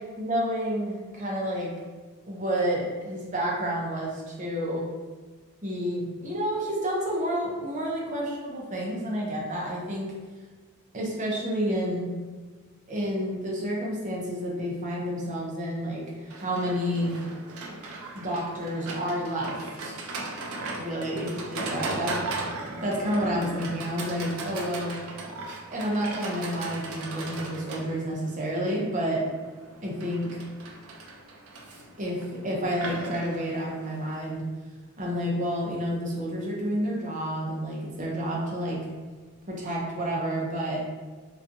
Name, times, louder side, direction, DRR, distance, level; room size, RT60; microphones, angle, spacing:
voice 1, 0.0-1.7 2.3-4.8 5.6-10.1 10.9-12.1 12.9-17.1 18.1-19.6 19.8-20.0 20.7-22.2 22.8-24.9 25.7-29.2 29.8-30.4 32.0-32.2 32.4-34.4 35.0-38.8 39.5-40.8, equal, 35° right, -3 dB, 0.6 m, -30 dB
Livestock farm animals working animals, 16.3-34.3, right 2 dB, 90° right, 0.5 m, -37 dB
2.6 x 2.3 x 2.5 m, 1.4 s
head